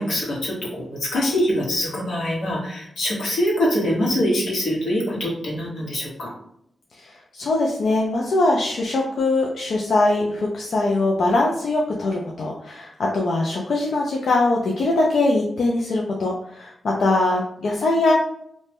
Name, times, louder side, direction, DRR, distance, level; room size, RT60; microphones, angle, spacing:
voice 1, 0.0-6.3, equal, 90° left, -5 dB, 1.1 m, -24 dB
voice 2, 6.9-18.1, left 2 dB, 65° left, -2 dB, 0.4 m, -22 dB
2.6 x 2.1 x 3.3 m, 0.73 s
wide cardioid pair, 160°, 0 cm